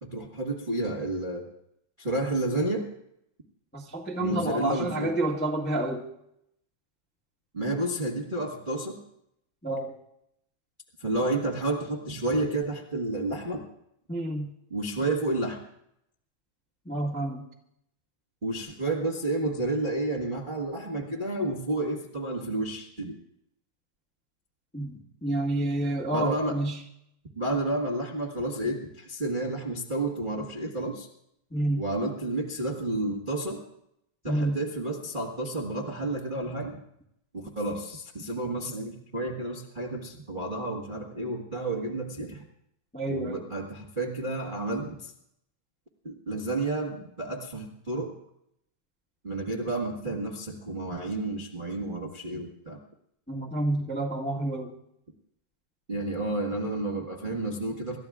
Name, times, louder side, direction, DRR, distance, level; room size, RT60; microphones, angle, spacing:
voice 1, 0.0-1.5 2.0-2.9 4.2-5.1 7.5-9.0 11.0-13.6 14.7-15.6 18.4-23.1 26.1-26.6 27.3-31.1 31.8-33.6 34.2-36.8 37.3-42.4 43.1-45.1 46.0-48.1 49.2-52.8 55.9-58.0, right 2 dB, 35° right, -1 dB, 0.8 m, -31 dB
voice 2, 3.7-6.0 9.6-9.9 14.1-14.5 16.8-17.4 24.7-26.8 31.5-31.8 34.2-34.6 42.9-43.4 53.3-54.7, right 1 dB, 10° left, -2 dB, 0.7 m, -29 dB
27.5 x 13.5 x 2.4 m, 0.77 s
omnidirectional pair, 3.4 m